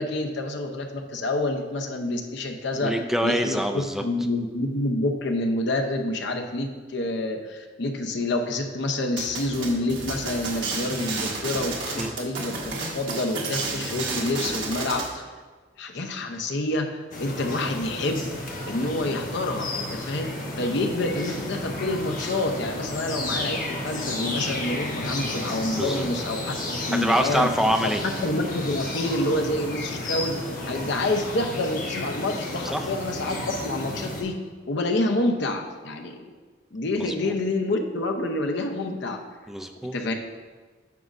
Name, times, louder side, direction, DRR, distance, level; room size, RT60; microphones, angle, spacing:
voice 1, 0.0-2.9 3.2-3.6 4.0-15.2 15.8-18.2 18.6-20.3 20.6-27.5 28.0-34.4 34.7-36.1 36.7-39.2 39.9-40.1, left 2 dB, 65° left, 4 dB, 0.7 m, -28 dB
voice 2, 2.8-4.0 12.0-12.1 25.8-26.1 27.0-28.0 32.7-32.9 37.0-37.1 39.5-39.9, equal, ahead, 4 dB, 0.3 m, -25 dB
sound 1, 9.2-15.1, right 3 dB, 75° right, 1.4 m, -31 dB
sound 2, 17.1-34.2, left 2 dB, 45° left, 1.1 m, -32 dB
9.3 x 6.0 x 2.6 m, 1.4 s
head